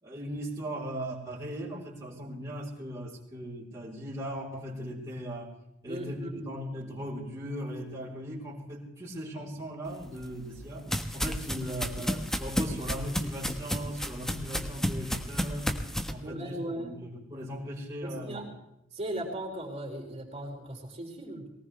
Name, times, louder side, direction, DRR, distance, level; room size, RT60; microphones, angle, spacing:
voice 1, 0.0-5.5 5.8-15.8 16.1-18.4, equal, 20° right, -9 dB, 3.9 m, -38 dB
voice 2, 5.9-6.4 16.2-17.0 18.0-18.5 18.9-21.5, right 1 dB, 35° right, 0 dB, 5.0 m, -37 dB
sound 1, 10.0-16.1, equal, 5° left, 1.2 m, -32 dB
22.5 x 18.5 x 3.3 m, 0.87 s
head